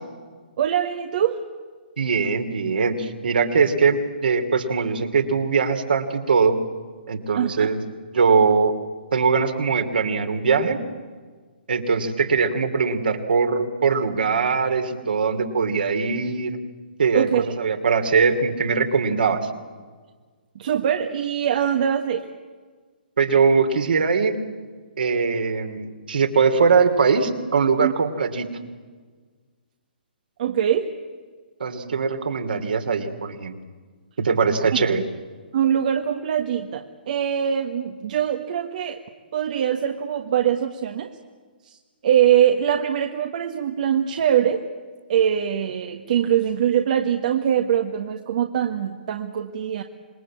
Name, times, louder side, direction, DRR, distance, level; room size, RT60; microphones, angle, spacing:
voice 1, 0.6-1.4 7.3-7.7 17.1-17.5 20.5-22.3 27.8-27.9 30.4-30.9 35.5-39.0 39.3-41.1 41.6-41.8 42.0-44.6 45.1-49.8, right 9 dB, 50° right, 5 dB, 1.5 m, -22 dB
voice 2, 2.0-6.6 7.1-7.8 8.1-8.7 9.1-10.8 11.7-16.6 17.0-17.3 17.6-19.5 23.2-24.4 25.0-28.5 31.6-33.5 34.2-35.0, right 5 dB, 70° right, 6 dB, 2.9 m, -21 dB
27.0 x 21.0 x 8.6 m, 1.5 s
figure-of-eight pair, 130°, 5 cm